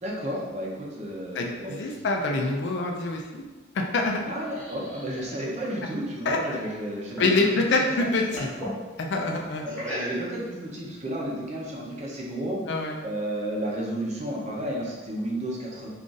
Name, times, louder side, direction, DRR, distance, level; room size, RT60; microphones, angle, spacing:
voice 1, 0.0-2.0 4.3-7.9 9.6-12.6 13.0-15.9, right 1 dB, 35° right, -3 dB, 0.6 m, -32 dB
voice 2, 1.3-3.2 3.7-4.2 6.3-6.4 7.2-8.5 9.0-9.7 12.7-13.0, left 3 dB, 60° left, 1 dB, 0.4 m, -25 dB
sound 1, 4.4-7.4 7.7-8.8 9.7-10.5, equal, 5° left, 0.9 m, -38 dB
2.4 x 2.4 x 3.8 m, 1.3 s
head